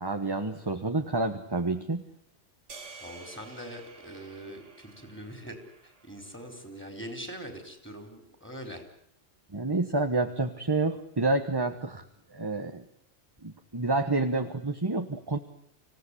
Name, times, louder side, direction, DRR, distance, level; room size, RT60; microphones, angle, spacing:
voice 1, 0.0-2.0 9.5-12.0 12.3-12.8 13.4-15.4, right 2 dB, 20° right, 6 dB, 1.2 m, -29 dB
sound 1, 2.7-7.1, right 4 dB, 80° right, 2.4 m, -51 dB
voice 2, 3.0-5.6 5.8-8.8, equal, 10° left, 5 dB, 4.3 m, -42 dB
26.0 x 16.5 x 10.0 m, 0.74 s
omnidirectional pair, 1.2 m